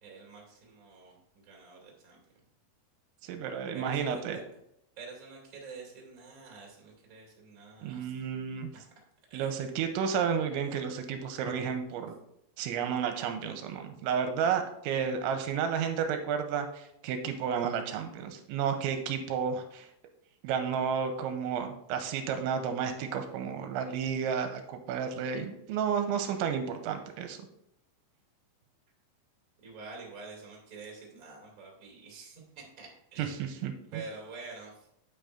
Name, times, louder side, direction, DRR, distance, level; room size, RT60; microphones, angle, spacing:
voice 1, 0.0-2.2 3.7-4.4 5.0-8.1 8.7-8.8 9.3-9.6 25.3-25.4 29.6-33.4 33.9-34.9, right 4 dB, 30° right, -2 dB, 1.7 m, -47 dB
voice 2, 3.2-4.4 7.8-8.7 9.3-12.1 12.6-19.9 20.4-27.4 33.2-34.0, right 7 dB, 85° right, 6 dB, 2.9 m, -32 dB
9.0 x 8.9 x 2.5 m, 0.78 s
omnidirectional pair, 5.5 m